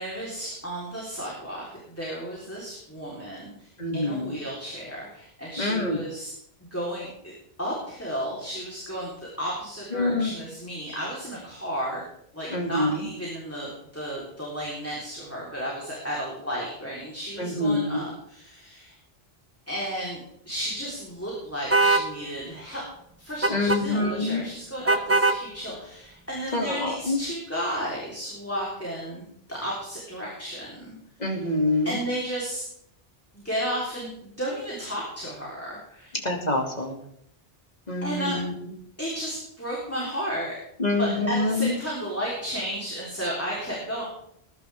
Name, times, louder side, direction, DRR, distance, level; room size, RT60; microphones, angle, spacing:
voice 1, 0.0-6.3 6.6-7.3 7.6-12.0 12.3-19.0 19.7-20.2 20.5-22.8 23.2-30.9 31.2-31.3 31.8-32.6 33.3-36.2 38.0-38.4 39.0-40.5 41.0-44.0, equal, 15° left, -6 dB, 3.9 m, -33 dB
voice 2, 3.8-4.4 5.6-6.0 9.9-10.3 12.5-13.1 17.4-18.0 23.5-24.5 26.5-27.2 31.2-32.0 36.2-37.0 37.9-38.5 40.8-41.7, left 2 dB, 40° left, 1 dB, 2.6 m, -26 dB
sound 1, 21.7-22.1 23.4-23.8 24.9-25.4, right 3 dB, 15° right, 0.6 m, -20 dB
20.5 x 11.0 x 3.6 m, 0.72 s
omnidirectional pair, 1.0 m